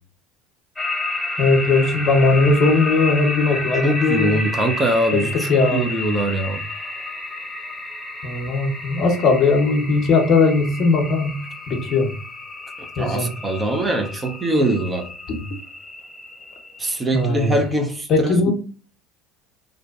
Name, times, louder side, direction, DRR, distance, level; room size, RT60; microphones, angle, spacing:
sound 1, 0.8-17.5, left 2 dB, 10° left, 0.8 m, -31 dB
voice 1, 1.4-4.4 5.1-5.8 8.2-11.4 11.7-12.1 13.0-13.3 15.3-15.4 17.1-17.6 18.1-18.5, left 3 dB, 50° left, 0.7 m, -18 dB
voice 2, 3.7-6.6 12.8-15.1 16.8-18.5, right 1 dB, 20° right, 0.5 m, -23 dB
2.5 x 2.1 x 2.4 m
hypercardioid pair, 80°, 0 cm